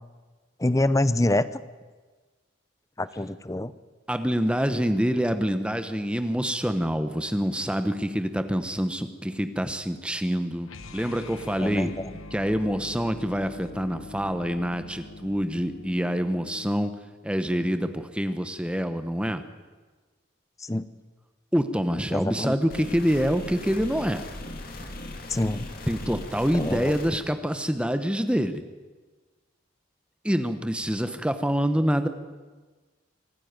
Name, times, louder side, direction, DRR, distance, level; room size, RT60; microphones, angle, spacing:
voice 1, 0.6-1.5 3.0-3.7 11.6-11.9 20.6-20.8 22.1-22.6 25.3-25.7 26.5-27.0, left 1 dB, 15° left, 15 dB, 0.6 m, -25 dB
voice 2, 4.1-11.9 12.3-16.9 17.2-19.4 21.5-24.2 25.9-28.6 30.2-32.1, equal, 5° right, 9 dB, 1.0 m, -26 dB
sound 1, 10.6-16.7, left 3 dB, 85° left, 1.1 m, -43 dB
sound 2, 22.7-27.1, left 1 dB, 45° left, 2.5 m, -38 dB
25.0 x 12.0 x 9.6 m, 1.3 s
head